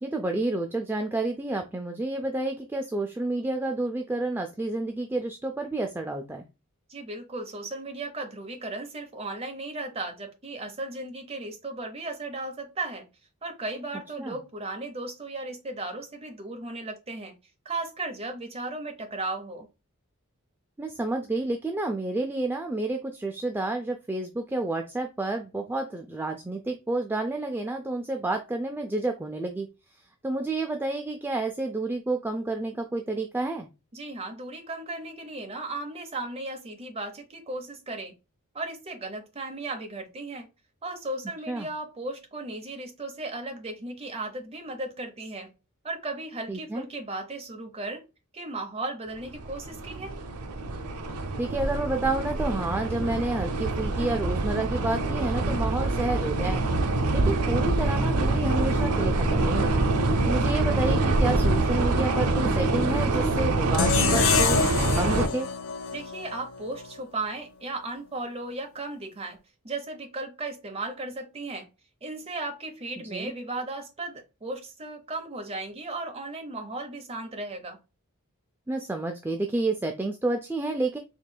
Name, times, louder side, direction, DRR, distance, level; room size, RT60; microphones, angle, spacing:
voice 1, 0.0-6.4 14.2-14.4 20.8-30.0 30.2-33.7 41.5-41.7 46.5-46.9 51.4-59.9 60.2-64.6 64.9-65.5 73.1-73.3 78.7-81.0, right 2 dB, 10° right, 0.3 m, -30 dB
voice 2, 6.9-13.1 13.4-17.3 17.6-19.7 33.9-38.1 38.5-40.5 40.8-45.5 45.8-48.0 48.3-50.2 65.9-69.4 69.6-71.7 72.0-77.8, right 2 dB, 25° right, 0.8 m, -36 dB
sound 1, 49.3-65.3, right 2 dB, 90° right, 0.6 m, -25 dB
sound 2, 63.7-66.9, left 6 dB, 60° left, 0.5 m, -26 dB
4.4 x 3.1 x 2.2 m
head